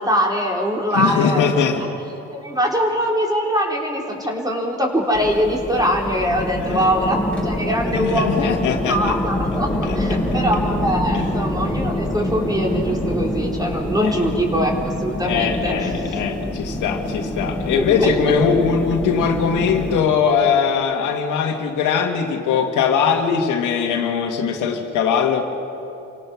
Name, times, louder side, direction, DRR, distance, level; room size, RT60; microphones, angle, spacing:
voice 1, 0.0-1.5 2.3-16.2 17.7-18.4, equal, 15° right, -1 dB, 3.8 m, -22 dB
voice 2, 0.9-1.8 6.5-6.9 7.9-9.1 9.9-10.0 11.1-11.3 14.0-14.2 15.2-25.5, left 6 dB, 85° left, 3 dB, 1.9 m, -21 dB
sound 1, 5.1-20.0, left 1 dB, 5° left, 6.0 m, -25 dB
28.0 x 17.5 x 6.2 m, 2.9 s
cardioid pair, 90°, 30 cm